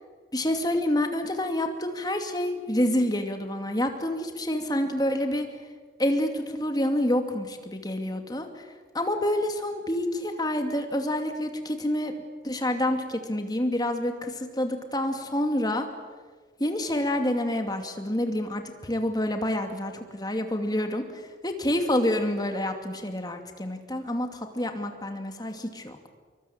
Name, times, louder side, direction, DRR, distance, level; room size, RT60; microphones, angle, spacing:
voice 1, 0.3-5.5 6.0-8.7 8.9-12.1 12.4-15.9 16.6-26.0, left 1 dB, 20° left, 5 dB, 2.5 m, -28 dB
26.5 x 23.5 x 8.9 m, 1.4 s
head